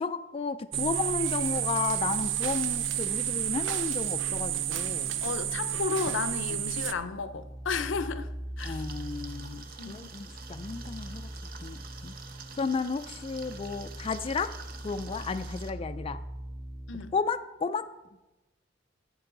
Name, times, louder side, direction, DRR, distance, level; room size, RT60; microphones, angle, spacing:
voice 1, 0.0-5.1 8.6-11.3 11.6-12.1 12.6-14.5 14.8-16.2 17.1-17.9, left 4 dB, 30° left, 0.3 m, -33 dB
sound 1, 0.7-6.9, right 10 dB, 75° right, 0.5 m, -30 dB
voice 2, 5.2-8.3 8.6-8.9 9.8-10.1 16.9-17.1, left 5 dB, 80° left, 0.6 m, -33 dB
sound 2, 6.9-17.1, right 1 dB, 15° right, 1.5 m, -42 dB
sound 3, 8.6-15.7, right 5 dB, 50° right, 0.9 m, -47 dB
11.5 x 8.1 x 3.8 m
head